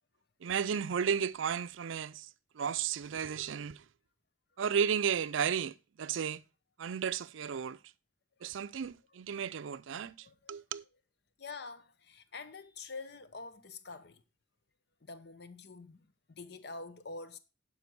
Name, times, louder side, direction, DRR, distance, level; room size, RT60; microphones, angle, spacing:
voice 1, 0.4-2.3 2.5-3.8 4.6-6.4 6.8-7.8 8.4-10.8, right 7 dB, 85° right, 0.5 m, -33 dB
voice 2, 9.9-10.6 11.4-14.2 15.0-17.4, left 3 dB, 55° left, 0.9 m, -47 dB
12.0 x 5.2 x 4.6 m
head